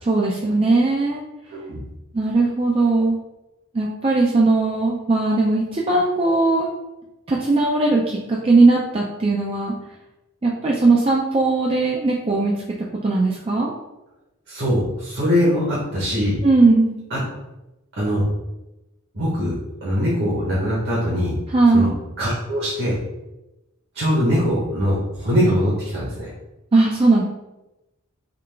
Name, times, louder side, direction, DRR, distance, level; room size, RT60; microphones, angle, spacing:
voice 1, 0.0-1.2 2.1-3.2 3.7-6.7 7.3-9.7 10.4-12.5 13.0-13.7 16.4-16.9 21.5-21.9 26.7-27.2, right 3 dB, 25° right, -3 dB, 0.3 m, -18 dB
voice 2, 14.5-16.3 17.1-17.2 17.9-18.2 19.1-21.3 21.7-21.9 22.2-23.0 23.9-26.3, equal, 50° right, -6 dB, 1.0 m, -22 dB
3.8 x 2.3 x 3.3 m, 0.96 s
head